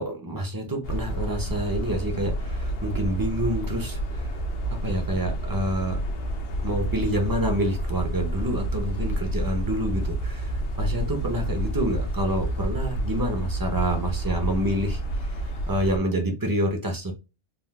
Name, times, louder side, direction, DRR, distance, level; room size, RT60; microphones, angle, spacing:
voice 1, 0.0-4.3 4.7-6.0 6.6-15.0 15.3-17.1, right 1 dB, 25° right, 0.6 m, -28 dB
sound 1, 0.8-16.0, right 1 dB, 60° left, 0.8 m, -29 dB
3.6 x 2.4 x 2.2 m
omnidirectional pair, 1.3 m